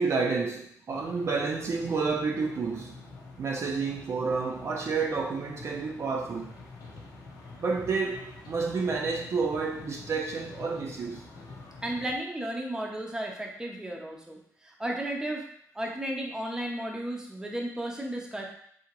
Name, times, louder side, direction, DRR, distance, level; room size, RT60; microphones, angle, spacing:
voice 1, 0.0-3.0 3.4-6.5 7.6-11.3, right 4 dB, 45° right, 0.4 m, -30 dB
sound 1, 0.9-12.1, left 3 dB, 80° left, 0.7 m, -47 dB
voice 2, 11.8-15.4 15.7-18.5, right 1 dB, 10° right, 0.6 m, -34 dB
3.8 x 2.8 x 2.9 m
cardioid pair, 110°, 6 cm